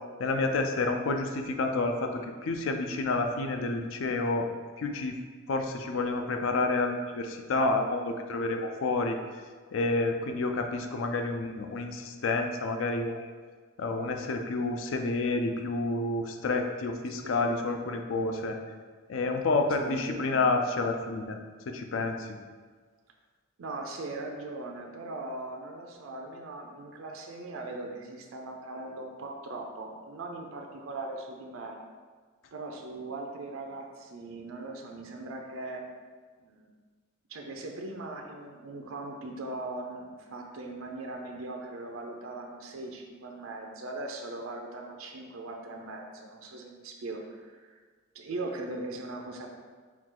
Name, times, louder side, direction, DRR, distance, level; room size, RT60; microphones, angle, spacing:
voice 1, 0.2-4.5 4.8-5.1 5.5-9.2 9.7-13.3 13.8-18.6 19.1-21.4 21.7-22.4, left 3 dB, 75° left, 5 dB, 0.4 m, -29 dB
voice 2, 17.1-17.6 19.4-20.4 23.6-31.8 32.5-35.8 36.4-36.7 37.3-47.8 48.1-49.5, right 2 dB, 90° right, 2 dB, 0.5 m, -40 dB
4.6 x 2.3 x 3.7 m, 1.5 s
head